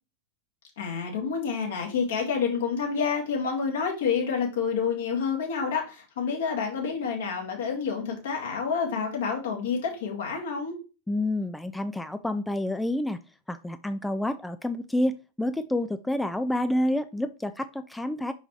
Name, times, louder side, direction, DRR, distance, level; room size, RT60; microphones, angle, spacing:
voice 1, 0.8-10.8, left 6 dB, 60° left, 1 dB, 2.1 m, -28 dB
voice 2, 11.1-13.2 13.5-18.3, left 1 dB, 5° left, 10 dB, 0.4 m, -28 dB
6.0 x 5.5 x 3.2 m, 0.32 s
figure-of-eight pair, 90°, 0 cm